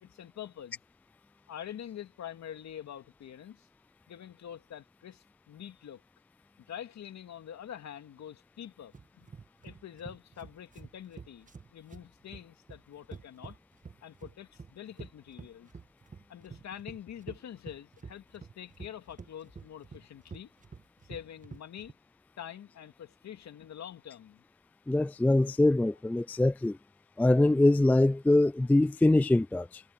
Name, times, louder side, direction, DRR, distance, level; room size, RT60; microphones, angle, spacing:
voice 1, 0.0-0.8 1.5-3.7 4.1-6.0 6.7-9.3 9.6-13.6 14.0-15.7 16.3-20.5 21.0-22.0 22.4-24.4, left 10 dB, 65° left, 2.4 m, -45 dB
sound 1, 8.9-21.9, right 5 dB, 25° right, 1.3 m, -48 dB
voice 2, 24.9-26.8 27.2-29.8, left 2 dB, 5° left, 0.3 m, -23 dB
cardioid pair, 90°, 30 cm